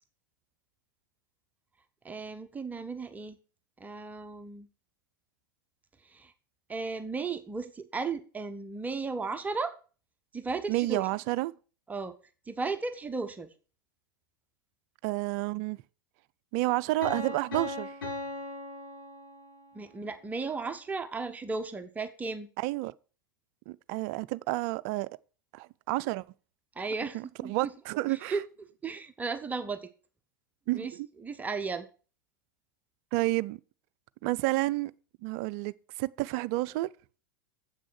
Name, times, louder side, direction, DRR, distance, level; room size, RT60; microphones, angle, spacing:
voice 1, 2.0-3.4 3.8-4.7 6.1-6.3 6.7-9.8 10.3-11.1 11.9-12.1 12.5-13.5 19.7-22.5 26.8-27.7 28.1-28.4 28.8-29.9 30.7-30.9 31.2-31.9, right 4 dB, 15° right, 0.9 m, -35 dB
voice 2, 10.7-11.5 15.0-15.8 16.5-17.9 22.6-22.9 23.7-25.1 25.5-26.2 27.1-28.4 30.7-31.1 33.1-33.6 34.2-34.9 35.2-35.7 36.0-36.9, right 19 dB, 45° right, 0.4 m, -30 dB
Piano, 17.0-19.8, left 2 dB, 75° left, 5.5 m, -38 dB
8.0 x 6.2 x 6.4 m
figure-of-eight pair, 90°, 11 cm